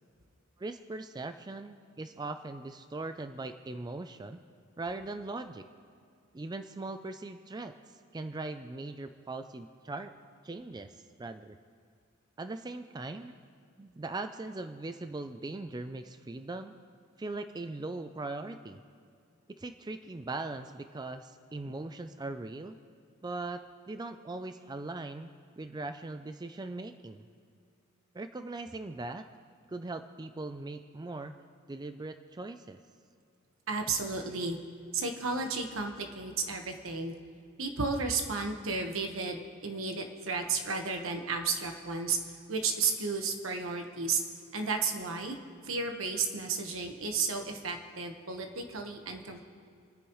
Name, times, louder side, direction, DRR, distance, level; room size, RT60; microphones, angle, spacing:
voice 1, 0.6-4.4 4.8-5.7 6.3-10.1 10.4-11.6 12.4-13.3 13.8-16.8 17.2-18.8 19.5-22.8 23.2-27.3 28.1-29.3 29.7-31.3 31.7-32.8, right 2 dB, 20° right, 8 dB, 0.4 m, -40 dB
voice 2, 33.7-34.6 34.9-37.1 37.6-42.2 42.5-44.2 44.5-45.4 45.6-49.4, right 4 dB, 75° right, 4 dB, 1.3 m, -33 dB
29.5 x 9.9 x 3.1 m, 2.4 s
head